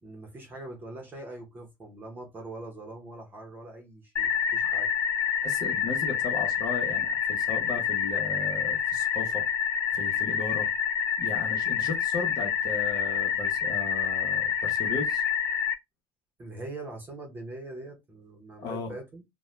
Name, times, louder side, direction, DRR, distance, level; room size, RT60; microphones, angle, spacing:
voice 1, 0.0-4.9 7.7-7.8 16.4-19.2, right 2 dB, 20° right, 0.9 m, -42 dB
sound 1, 4.2-15.8, left 8 dB, 30° left, 0.4 m, -27 dB
voice 2, 5.4-9.5 9.9-10.7 11.2-15.2 18.6-19.0, left 4 dB, 50° left, 1.0 m, -36 dB
2.6 x 2.2 x 3.2 m
cardioid pair, 160°, 9 cm